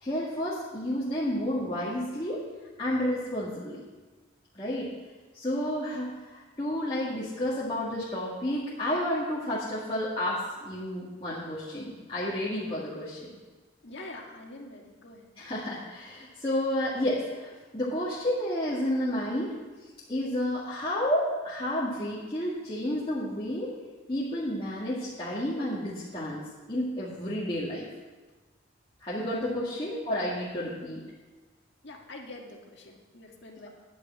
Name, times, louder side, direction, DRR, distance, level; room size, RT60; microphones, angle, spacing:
voice 1, 0.0-2.4 2.8-3.8 4.5-4.9 5.3-13.3 15.4-19.6 20.1-23.7 24.1-26.4 26.7-27.9 29.0-31.0, left 1 dB, 25° left, -8 dB, 1.9 m, -31 dB
voice 2, 13.8-15.3 29.2-29.4 31.8-33.7, left 2 dB, 55° left, 0 dB, 1.9 m, -45 dB
10.5 x 6.7 x 8.5 m, 1.3 s
head